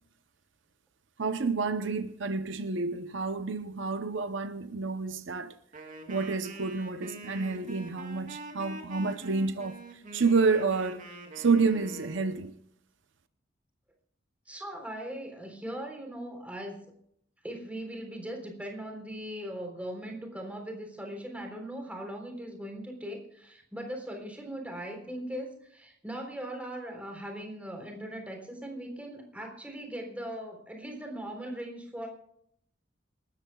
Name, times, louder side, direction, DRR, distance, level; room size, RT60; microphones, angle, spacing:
voice 1, 1.2-5.5 6.1-9.8 10.1-11.0 11.4-12.5, right 4 dB, 70° right, 0.8 m, -29 dB
Wind instrument woodwind instrument, 5.7-12.4, right 2 dB, 45° right, 3.0 m, -45 dB
voice 2, 14.5-16.8 17.4-32.1, right 1 dB, 5° right, 3.7 m, -39 dB
27.5 x 13.5 x 2.4 m
head